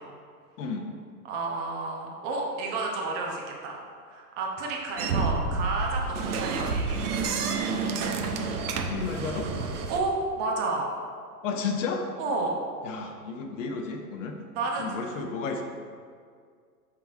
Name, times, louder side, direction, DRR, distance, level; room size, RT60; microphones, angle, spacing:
voice 1, 0.6-0.9 6.2-6.3 8.9-9.5 11.4-12.1 12.8-14.4 14.8-15.6, left 5 dB, 50° left, 4 dB, 0.8 m, -32 dB
voice 2, 1.2-3.8 4.1-7.1 9.9-10.9 12.2-12.6 14.6-15.0, right 3 dB, 35° right, 0 dB, 0.9 m, -31 dB
sound 1, 5.0-10.0, right 4 dB, 65° right, 0.8 m, -29 dB
5.9 x 3.7 x 4.5 m, 2.1 s
figure-of-eight pair, 100°, 49 cm